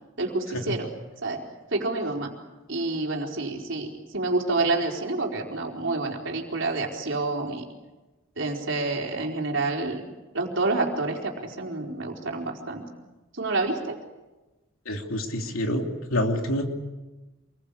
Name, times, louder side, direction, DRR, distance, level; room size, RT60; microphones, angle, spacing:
voice 1, 0.2-0.9 1.2-1.4 1.7-2.3 2.7-7.6 8.4-10.0 10.3-12.8 13.3-14.0, right 3 dB, 60° right, 1 dB, 4.4 m, -28 dB
voice 2, 14.8-15.8 16.1-16.7, left 1 dB, 80° left, 3 dB, 3.1 m, -26 dB
27.5 x 22.0 x 8.5 m, 1.1 s
head